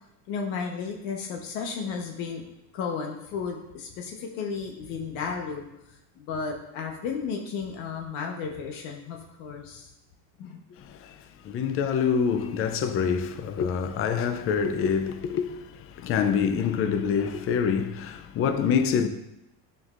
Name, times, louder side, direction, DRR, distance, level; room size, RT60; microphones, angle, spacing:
voice 1, 0.3-2.4 2.7-9.9 10.4-10.6, left 5 dB, 70° left, 1.1 m, -34 dB
voice 2, 10.7-19.1, left 6 dB, 30° left, 0.4 m, -26 dB
9.4 x 4.5 x 2.4 m
cardioid pair, 130°, 50 cm